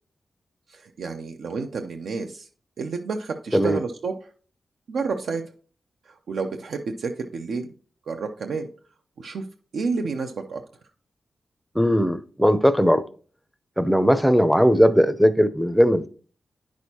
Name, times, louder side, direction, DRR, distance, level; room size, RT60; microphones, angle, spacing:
voice 1, 0.7-2.5 2.8-4.1 4.9-5.4 6.1-7.7 8.1-8.7 9.2-9.4 9.7-10.6, right 4 dB, 85° right, 0.6 m, -30 dB
voice 2, 11.8-13.0 13.8-16.1, equal, ahead, 0.5 m, -18 dB
9.8 x 6.2 x 2.8 m
wide cardioid pair, 120°, 0 cm